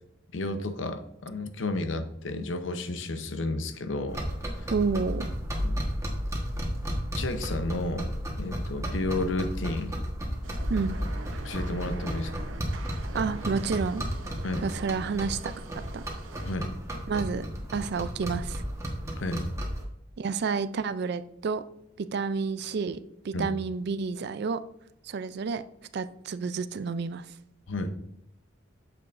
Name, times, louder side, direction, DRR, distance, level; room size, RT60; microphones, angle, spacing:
voice 1, 0.3-4.2 4.6-4.7 5.6-5.8 7.1-8.1 8.4-9.9 11.4-12.5 14.4-14.7 16.5-16.7 19.2-19.5 23.3-23.5 27.7-27.9, left 2 dB, 75° left, 9 dB, 0.8 m, -32 dB
sound 1, 4.1-19.8, equal, 15° right, 1.3 m, -33 dB
voice 2, 4.7-5.3 10.7-11.0 13.1-14.0 14.6-15.5 15.9-16.0 17.1-17.5 17.7-18.6 20.2-21.6 22.0-23.0 23.2-24.6 25.0-25.6 25.9-27.3, right 5 dB, 55° right, 14 dB, 0.4 m, -30 dB
sound 2, 10.4-16.6, right 3 dB, 80° right, 0.8 m, -44 dB
8.6 x 6.9 x 2.6 m, 0.78 s
head